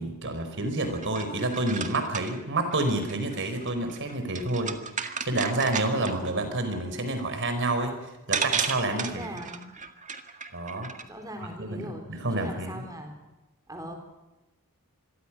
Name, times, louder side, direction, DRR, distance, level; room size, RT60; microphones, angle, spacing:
voice 1, 0.0-4.8 5.2-8.0 8.3-9.4 10.5-10.9 11.6-12.9, right 2 dB, 55° right, 7 dB, 4.6 m, -29 dB
sound 1, 0.8-6.3 7.8-7.9 8.3-11.0, right 6 dB, 35° right, 1.9 m, -34 dB
voice 2, 8.9-9.6 11.0-12.1 12.4-13.2 13.7-13.9, right 1 dB, 15° right, 4 dB, 3.9 m, -39 dB
27.0 x 22.5 x 6.2 m, 1.1 s
head